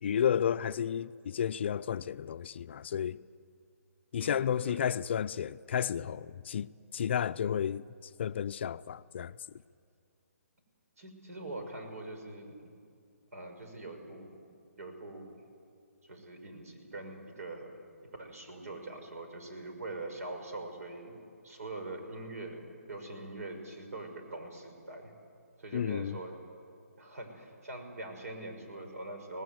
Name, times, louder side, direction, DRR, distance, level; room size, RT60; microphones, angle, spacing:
voice 1, 0.0-3.2 4.1-7.8 8.2-9.3 25.7-26.2, left 8 dB, 45° left, 0.5 m, -32 dB
voice 2, 4.2-4.8 11.0-12.5 13.3-14.3 14.8-15.3 16.0-17.8 18.0-21.2 21.4-25.1 25.6-26.4 27.0-29.4, right 2 dB, 75° right, 5.7 m, -43 dB
25.5 x 19.0 x 7.8 m
hypercardioid pair, 155°, 8 cm